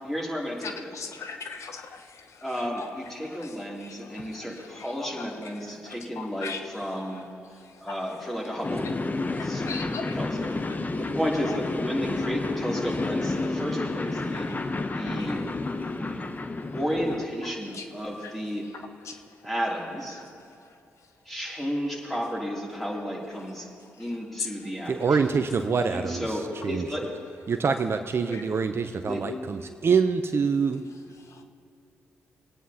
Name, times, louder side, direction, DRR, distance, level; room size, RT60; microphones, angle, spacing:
voice 1, 0.0-0.7 2.4-7.2 7.8-8.8 9.5-9.6 10.2-10.3 10.9-14.5 14.9-15.4 15.9-16.3 16.7-18.7 19.4-20.2 21.3-23.7 24.0-24.9 25.9-27.1 28.2-28.4 29.0-29.2, equal, 5° left, -3 dB, 2.8 m, -32 dB
voice 2, 0.6-11.6 12.7-12.9 14.1-14.7 15.0-16.8 17.4-19.5 20.1-21.4 22.9-23.0 23.4-24.9 28.3-28.4 30.9-31.4, left 5 dB, 65° left, 6 dB, 0.9 m, -43 dB
sound 1, 8.6-17.2, left 3 dB, 30° left, 0.9 m, -30 dB
voice 3, 24.9-26.9 27.5-30.8, right 5 dB, 50° right, 8 dB, 0.6 m, -25 dB
22.5 x 9.3 x 2.8 m, 2.4 s
hypercardioid pair, 45°, 5 cm